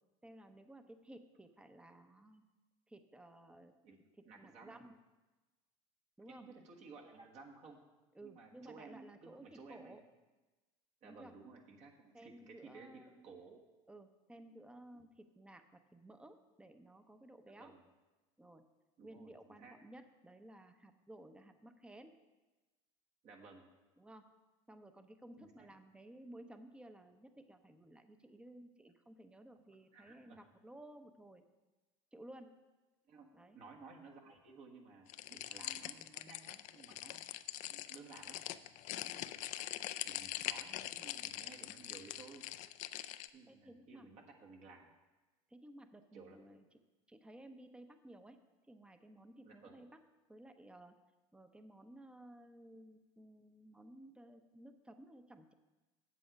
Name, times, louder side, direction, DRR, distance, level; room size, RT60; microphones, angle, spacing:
voice 1, 0.2-2.4 2.9-3.7 4.2-5.0 6.2-6.5 8.1-10.0 11.0-11.3 12.1-13.3 13.9-17.7 18.4-18.7 19.0-22.2 24.0-24.2 24.7-31.4 32.1-32.5 33.3-33.6 37.1-37.2 38.9-39.2 43.5-44.1 45.5-46.6 47.1-48.4 48.7-50.0 50.3-51.0 51.3-55.5, right 1 dB, 5° right, 9 dB, 0.7 m, -56 dB
voice 2, 4.2-4.8 6.3-7.8 8.2-10.0 11.0-13.6 17.4-17.8 19.0-19.3 19.6-19.7 23.2-23.7 25.4-25.7 29.9-30.5 33.1-33.3 33.5-37.4 37.7-38.4 39.8-42.5 43.3-44.9 46.1-46.6 49.4-49.8, right 4 dB, 50° right, 0 dB, 1.5 m, -56 dB
sound 1, 35.1-43.3, left 14 dB, 55° left, 0.4 m, -43 dB
7.7 x 7.6 x 5.1 m, 1.2 s
supercardioid pair, 95°, 15 cm